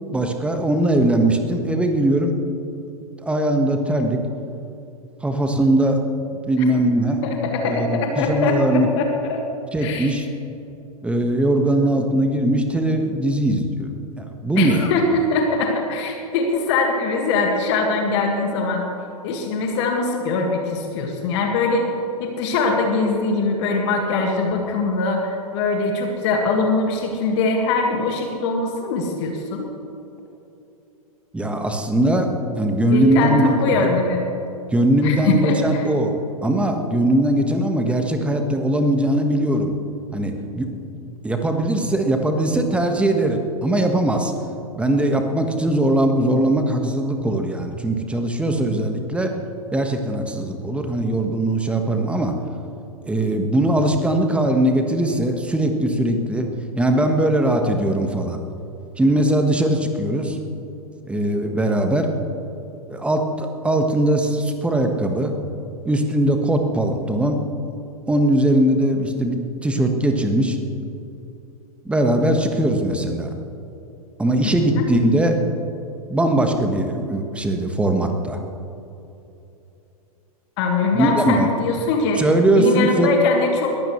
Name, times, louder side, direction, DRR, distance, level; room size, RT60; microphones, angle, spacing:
voice 1, 0.1-2.4 3.2-4.2 5.2-6.0 6.3-7.2 7.6-8.9 9.7-10.3 11.0-13.9 14.2-14.9 31.3-33.5 34.7-39.7 40.1-40.7 41.2-44.3 44.7-49.3 49.7-52.4 53.1-56.5 56.7-58.4 59.0-60.4 61.1-62.1 62.9-65.3 65.8-67.4 68.1-70.6 71.8-73.3 74.2-75.4 76.1-78.4 80.9-81.5 82.2-83.1, right 1 dB, 5° right, 4 dB, 1.5 m, -20 dB
voice 2, 7.2-9.4 9.8-10.1 14.6-18.8 19.2-21.9 22.2-29.7 32.9-34.2 35.0-35.9 74.8-74.9 80.6-82.2 82.5-83.7, left 3 dB, 50° left, 1 dB, 2.0 m, -22 dB
21.0 x 15.0 x 3.2 m, 2.9 s
figure-of-eight pair, 105°, 19 cm